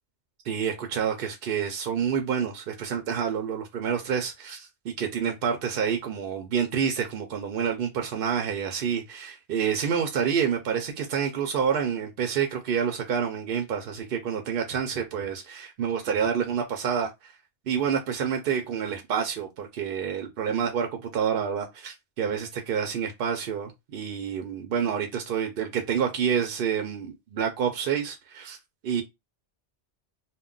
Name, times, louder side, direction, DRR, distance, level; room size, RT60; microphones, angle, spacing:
voice 1, 0.4-17.3 17.7-28.6 28.8-29.0, right 7 dB, 60° right, 0.7 m, -28 dB
2.2 x 2.1 x 3.7 m
omnidirectional pair, 1.1 m